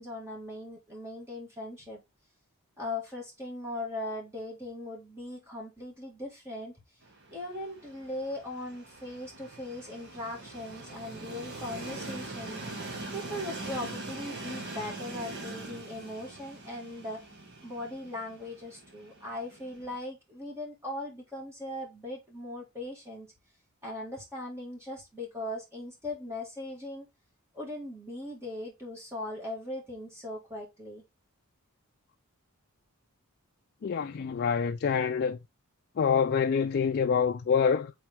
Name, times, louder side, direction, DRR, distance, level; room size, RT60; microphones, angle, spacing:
voice 1, 0.0-2.0 2.8-6.8 7.3-12.6 13.1-17.2 17.6-23.3 23.8-27.1 27.5-31.0, left 1 dB, 10° right, 1.9 m, -39 dB
Train, 7.0-20.0, right 2 dB, 50° right, 1.8 m, -43 dB
voice 2, 33.8-35.4 36.0-37.9, left 6 dB, 45° left, 0.4 m, -26 dB
7.5 x 4.1 x 3.5 m
head